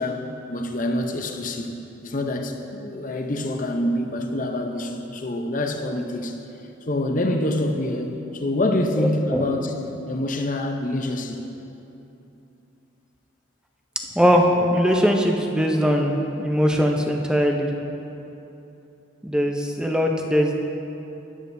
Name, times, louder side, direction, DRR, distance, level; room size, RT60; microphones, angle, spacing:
voice 1, 0.0-1.7 2.0-6.4 6.9-9.7 10.1-11.4, left 1 dB, 40° left, 4 dB, 0.7 m, -26 dB
voice 2, 9.0-9.4 14.2-17.7 19.2-20.5, equal, 5° right, 2 dB, 0.6 m, -21 dB
13.5 x 10.5 x 2.7 m, 2.9 s
head